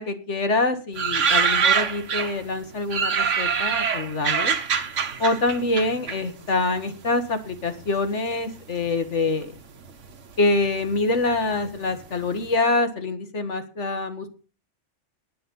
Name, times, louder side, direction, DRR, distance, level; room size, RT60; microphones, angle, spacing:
voice 1, 0.0-4.6 5.2-9.5 10.4-14.3, left 3 dB, 70° left, 8 dB, 2.0 m, -25 dB
sound 1, 1.0-2.5 2.9-6.8 7.0-7.9 8.6-9.1 9.4-9.5 9.7-12.0 12.3-12.4, right 6 dB, 80° right, 1.5 m, -24 dB
19.5 x 6.6 x 5.5 m, 0.37 s
omnidirectional pair, 1.3 m